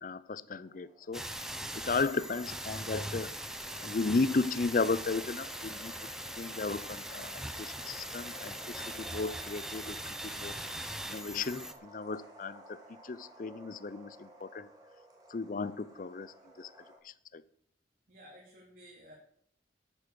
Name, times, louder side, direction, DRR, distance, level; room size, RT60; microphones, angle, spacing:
voice 1, 0.0-1.2 1.7-3.3 3.8-5.9 6.4-7.3 7.6-10.0 10.2-10.5 11.1-12.8 13.0-14.7 15.3-16.7 17.0-17.4, left 3 dB, 50° left, 18 dB, 0.5 m, -34 dB
sound 1, 0.6-17.0, right 1 dB, 20° right, 2.8 m, -56 dB
sound 2, 1.1-11.7, right 1 dB, 5° right, 0.7 m, -41 dB
voice 2, 18.1-19.1, equal, 50° right, -3 dB, 2.6 m, -54 dB
9.1 x 9.1 x 6.8 m, 0.69 s
head